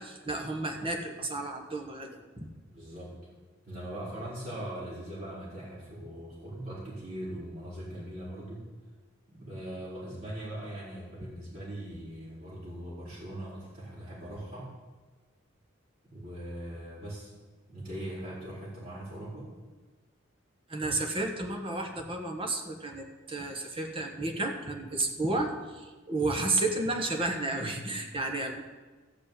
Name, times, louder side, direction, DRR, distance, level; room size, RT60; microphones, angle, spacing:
voice 1, 0.0-2.5 20.7-28.6, right 2 dB, 25° right, 3 dB, 1.4 m, -32 dB
voice 2, 2.7-3.2 3.6-8.6 9.3-14.7 16.0-17.3 17.7-19.5, right 1 dB, 45° right, -10 dB, 4.6 m, -40 dB
14.0 x 5.4 x 8.6 m, 1.3 s
head